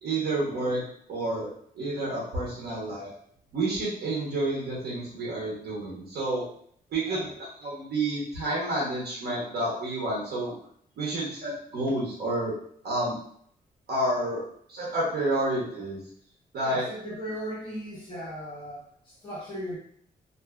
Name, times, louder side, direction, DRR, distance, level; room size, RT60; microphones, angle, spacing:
voice 1, 0.0-0.8 1.1-1.5 1.7-3.1 3.5-6.4 6.9-10.5 11.0-12.5 12.8-13.2 13.9-14.4 14.7-16.0 16.5-16.9, right 1 dB, 85° right, -5 dB, 0.9 m, -29 dB
voice 2, 16.6-19.8, equal, 30° left, -7 dB, 1.1 m, -37 dB
2.6 x 2.4 x 2.2 m, 0.63 s
wide cardioid pair, 170°, 16 cm